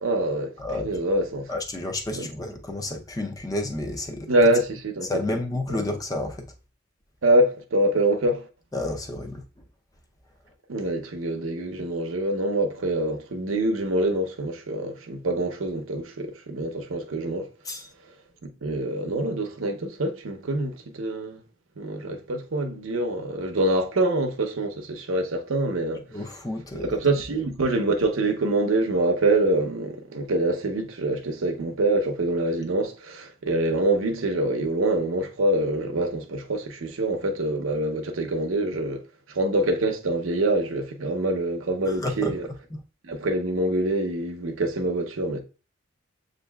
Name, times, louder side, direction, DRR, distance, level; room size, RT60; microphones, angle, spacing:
voice 1, 0.0-0.5 0.8-1.5 2.1-2.3 4.3-5.1 7.2-8.5 10.7-17.5 18.4-21.4 21.8-26.0 26.8-39.0 39.3-42.5 43.0-45.4, right 1 dB, 85° right, 0.7 m, -25 dB
voice 2, 0.6-1.0 1.5-4.3 5.0-6.5 8.7-9.4 17.6-17.9 26.1-27.0 41.8-42.4 42.7-42.8, left 2 dB, 15° left, 0.5 m, -31 dB
7.2 x 2.6 x 2.2 m
head